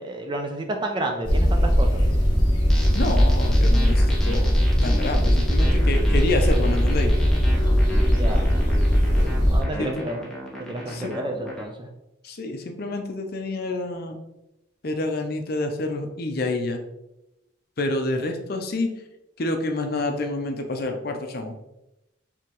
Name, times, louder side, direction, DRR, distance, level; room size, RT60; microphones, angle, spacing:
voice 1, 0.0-2.0 8.1-8.5 9.5-10.2 10.6-11.9, right 1 dB, 25° right, 3 dB, 0.5 m, -30 dB
sound 1, 1.2-9.6, equal, 25° left, 1.3 m, -19 dB
sound 2, 2.7-11.7, equal, 5° left, 0.8 m, -37 dB
voice 2, 2.9-7.1 9.8-10.0 10.9-11.1 12.2-14.2 14.8-16.8 17.8-18.9 19.4-21.5, left 2 dB, 50° left, 5 dB, 0.6 m, -28 dB
4.8 x 3.4 x 3.0 m, 0.90 s
head